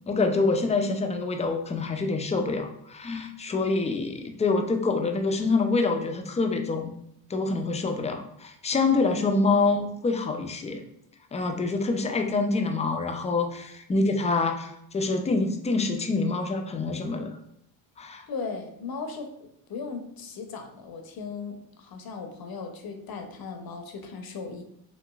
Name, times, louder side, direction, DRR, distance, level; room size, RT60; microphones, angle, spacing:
voice 1, 0.1-7.0 7.3-10.8 11.3-17.3 18.0-18.2, left 3 dB, 15° left, 5 dB, 0.3 m, -26 dB
voice 2, 8.9-9.4 18.3-24.6, left 4 dB, 50° left, 5 dB, 0.6 m, -37 dB
2.9 x 2.5 x 2.3 m, 0.73 s
supercardioid pair, 55°, 45 cm